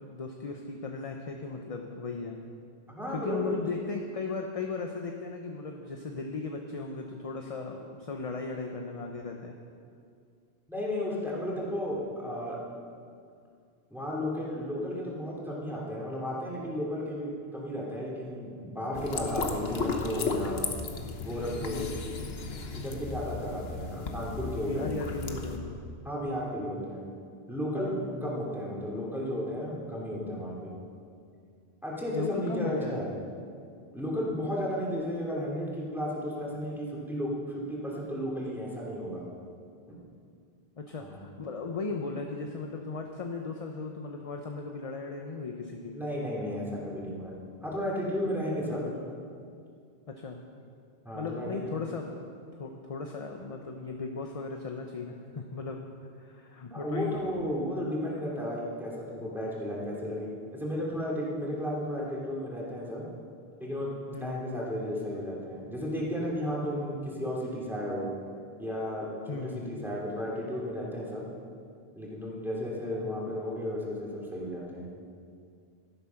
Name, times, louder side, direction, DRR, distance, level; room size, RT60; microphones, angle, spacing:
voice 1, 0.0-2.4 3.1-9.6 21.6-21.9 24.7-25.8 27.7-28.6 32.1-33.0 40.8-46.0 48.7-48.9 50.1-50.4 51.1-52.2 52.6-55.8 56.2-57.2 64.1-64.6 69.3-69.7, left 4 dB, 40° left, 2 dB, 0.8 m, -37 dB
voice 2, 2.9-3.6 10.7-12.6 13.9-20.6 21.2-21.9 22.7-24.9 26.0-27.0 27.5-30.7 31.8-33.1 33.9-39.2 39.9-40.0 41.0-41.2 45.9-47.3 47.6-48.8 51.0-51.6 56.7-60.3 60.6-63.0 63.6-63.9 64.2-68.1 68.6-71.2 71.9-74.9, equal, ahead, -5 dB, 2.9 m, -33 dB
sound 1, 18.9-25.6, left 4 dB, 75° left, 1.3 m, -35 dB
12.5 x 11.0 x 5.8 m, 2.3 s
omnidirectional pair, 1.0 m